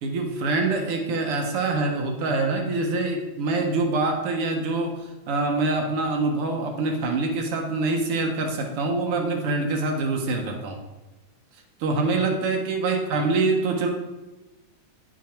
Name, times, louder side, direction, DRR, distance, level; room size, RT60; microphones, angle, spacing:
voice 1, 0.0-10.8 11.8-13.9, right 3 dB, 55° right, 2 dB, 1.9 m, -25 dB
10.0 x 7.4 x 4.5 m, 1.1 s
omnidirectional pair, 3.5 m